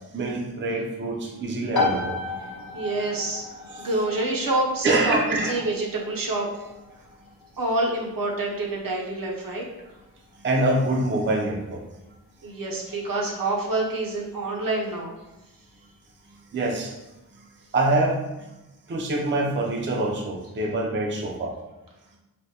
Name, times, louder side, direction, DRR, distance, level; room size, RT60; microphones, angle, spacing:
voice 1, 0.1-2.2 3.7-3.9 4.8-5.6 10.4-11.8 12.5-12.6 16.5-16.9 17.7-18.2 18.9-21.6, right 2 dB, 30° right, 0 dB, 0.5 m, -25 dB
sound 1, 1.7-16.2, left 3 dB, 85° left, 0.5 m, -36 dB
voice 2, 2.7-3.4 3.8-6.7 7.6-9.7 12.4-15.1, right 2 dB, 65° right, -2 dB, 0.7 m, -27 dB
3.4 x 2.1 x 2.8 m, 0.99 s
cardioid pair, 50°, 37 cm